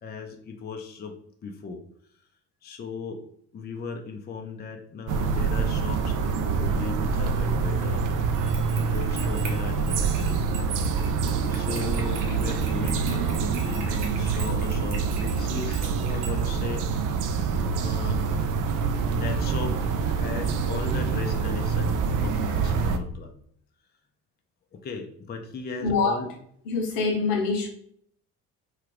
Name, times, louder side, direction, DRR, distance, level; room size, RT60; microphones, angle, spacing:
voice 1, 0.0-1.1 1.4-1.8 2.6-3.2 3.5-8.1 8.8-10.6 11.0-11.1 11.5-16.9 17.8-18.2 19.0-19.7 20.1-23.3 24.7-26.3, left 4 dB, 20° left, 0.5 m, -36 dB
sound 1, 5.1-23.0, right 5 dB, 45° right, 0.5 m, -26 dB
sound 2, 8.3-16.4, right 4 dB, 60° right, 0.9 m, -43 dB
voice 2, 25.8-26.2 26.6-27.7, left 4 dB, 70° left, 0.9 m, -25 dB
3.2 x 2.4 x 3.2 m
hypercardioid pair, 55°, 47 cm